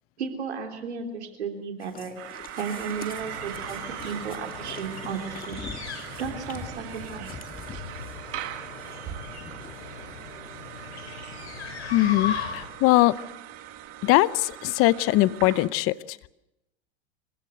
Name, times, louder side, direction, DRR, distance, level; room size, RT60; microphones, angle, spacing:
voice 1, 0.2-2.2 2.6-5.6 6.2-7.3, right 6 dB, 90° right, 4 dB, 3.3 m, -34 dB
sound 1, 1.8-10.1 10.4-10.5 11.0-11.1 11.3-11.4, left 6 dB, 25° left, 2.0 m, -44 dB
sound 2, 2.2-15.7, right 12 dB, 45° right, 2.4 m, -40 dB
sound 3, 3.0-12.8, left 6 dB, 90° left, 4.7 m, -39 dB
voice 2, 11.9-13.2 14.0-16.2, left 17 dB, 45° left, 18 dB, 0.7 m, -21 dB
26.5 x 15.5 x 7.8 m, 0.91 s
hypercardioid pair, 100°, 33 cm